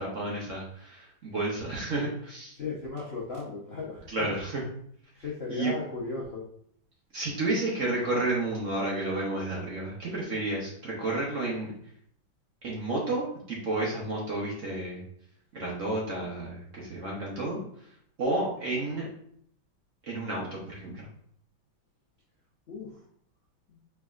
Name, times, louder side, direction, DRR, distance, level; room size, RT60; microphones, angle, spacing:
voice 1, 0.0-2.5 4.1-4.6 5.5-5.7 7.1-11.7 12.6-15.0 15.6-17.6 18.2-19.1 20.1-21.0, right 2 dB, 50° right, -4 dB, 1.0 m, -31 dB
voice 2, 2.6-4.3 5.2-6.4 17.4-17.6 22.7-22.9, left 4 dB, 60° left, -5 dB, 0.6 m, -36 dB
4.5 x 3.5 x 2.4 m, 0.64 s
omnidirectional pair, 2.2 m